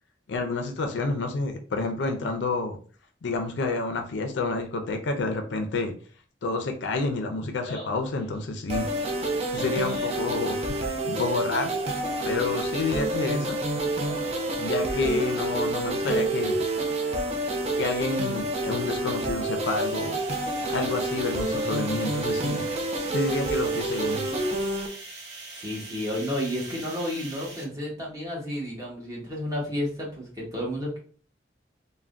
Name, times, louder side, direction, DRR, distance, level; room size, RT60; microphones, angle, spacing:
voice 1, 0.3-2.8 3.2-5.9 6.4-8.9 9.5-11.7 12.2-13.6 14.6-16.6 17.8-20.2 20.7-22.6 23.1-24.4, left 3 dB, 75° left, 5 dB, 0.4 m, -29 dB
Laughter, 7.4-18.5, equal, 30° left, 0.8 m, -49 dB
sound 1, 8.7-24.9, right 2 dB, 35° right, 0.4 m, -28 dB
sound 2, 19.6-27.6, right 3 dB, 70° right, 0.7 m, -43 dB
voice 2, 25.5-31.0, left 1 dB, 20° right, -4 dB, 0.9 m, -31 dB
3.3 x 2.1 x 2.4 m, 0.43 s
head